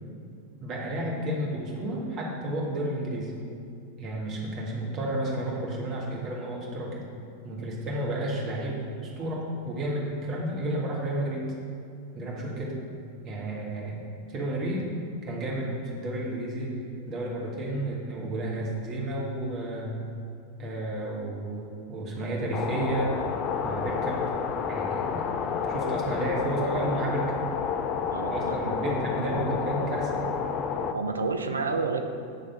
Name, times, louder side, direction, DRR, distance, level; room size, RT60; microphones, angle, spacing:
voice 1, 0.6-3.3 4.0-7.1 7.4-11.5 12.1-12.8 13.2-14.0 14.3-14.9 15.2-16.8 17.1-20.0 20.6-23.2 23.6-24.3 24.7-25.3 25.6-27.3 28.0-30.3, right 1 dB, 35° right, -3 dB, 1.5 m, -31 dB
sound 1, 22.5-30.9, left 6 dB, 35° left, 0.4 m, -30 dB
voice 2, 28.1-28.6 30.9-32.0, right 4 dB, 75° right, 6 dB, 0.5 m, -29 dB
9.4 x 3.5 x 5.7 m, 2.5 s
figure-of-eight pair, 90°, 0 cm